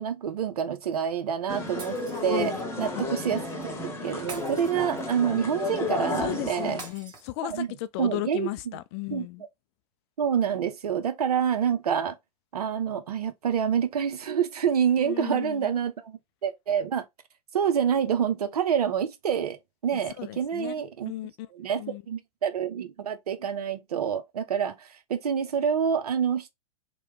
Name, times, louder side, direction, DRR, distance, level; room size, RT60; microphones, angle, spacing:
voice 1, 0.0-3.7 4.0-6.8 7.4-7.7 8.0-8.8 9.1-9.3 10.2-12.2 12.5-17.0 17.5-19.6 19.8-21.1 21.5-26.5, right 8 dB, 80° right, 0.7 m, -27 dB
sound 1, 1.5-6.9, left 2 dB, 15° left, 0.9 m, -32 dB
Shatter, 1.8-2.7 4.3-5.4 6.8-7.8, right 4 dB, 20° right, 1.1 m, -44 dB
voice 2, 6.2-9.4 15.0-15.7 19.9-20.8 21.1-21.5 21.8-22.0, left 17 dB, 45° left, 0.4 m, -35 dB
3.0 x 2.2 x 3.1 m
hypercardioid pair, 110°, 19 cm